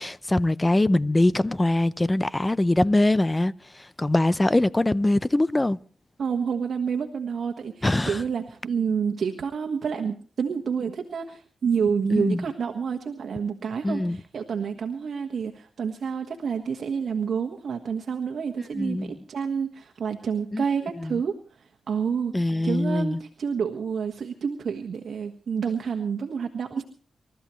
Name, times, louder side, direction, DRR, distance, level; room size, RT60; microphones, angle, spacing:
voice 1, 0.0-5.8 7.8-8.2 12.1-12.4 13.8-14.2 18.7-19.1 20.5-20.6 21.0-21.2 22.3-23.2, left 1 dB, 15° left, 0.6 m, -23 dB
voice 2, 6.2-22.4 22.6-26.8, right 6 dB, 70° right, 1.5 m, -29 dB
28.5 x 13.5 x 3.2 m
cardioid pair, 85°, 0 cm